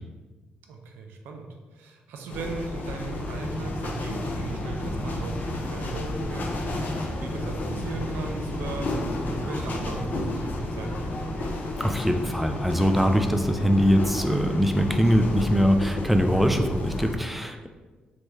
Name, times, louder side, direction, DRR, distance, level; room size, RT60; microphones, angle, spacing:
voice 1, 0.7-1.5 1.7-11.6, right 3 dB, 85° right, 3 dB, 0.4 m, -38 dB
sound 1, 2.3-17.2, left 2 dB, 60° left, 0.5 m, -32 dB
sound 2, 3.3-11.5, right 1 dB, 20° left, 0.7 m, -36 dB
voice 2, 11.8-17.7, equal, 5° right, 6 dB, 0.3 m, -22 dB
3.2 x 2.2 x 3.1 m, 1.3 s
supercardioid pair, 55°, 3 cm